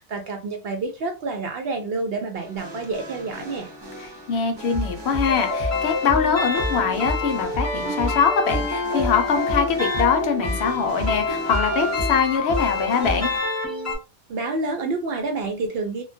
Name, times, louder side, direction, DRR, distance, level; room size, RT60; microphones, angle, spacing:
voice 1, 0.1-3.7 14.3-16.0, right 3 dB, 65° right, 5 dB, 0.8 m, -28 dB
sound 1, 2.4-13.4, left 1 dB, 30° right, 0.6 m, -32 dB
voice 2, 4.0-13.3, left 6 dB, 70° left, 7 dB, 0.8 m, -23 dB
sound 2, 5.2-14.0, left 3 dB, 20° left, 0.6 m, -27 dB
2.2 x 2.2 x 2.5 m, 0.28 s
omnidirectional pair, 1.2 m